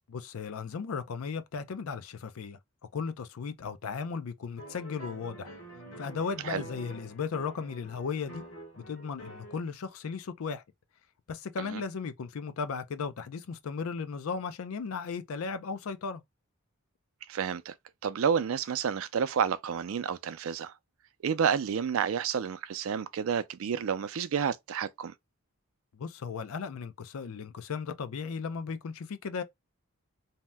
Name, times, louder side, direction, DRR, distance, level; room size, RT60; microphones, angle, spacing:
voice 1, 0.1-2.6 2.9-5.5 6.0-8.4 8.9-10.6 11.3-16.2 25.9-29.4, left 5 dB, 80° left, 0.4 m, -36 dB
sound 1, 4.6-9.6, right 2 dB, 60° left, 1.1 m, -47 dB
voice 2, 17.3-17.7 18.0-20.7 21.2-25.1, right 7 dB, 70° right, 0.4 m, -30 dB
2.7 x 2.1 x 3.3 m
head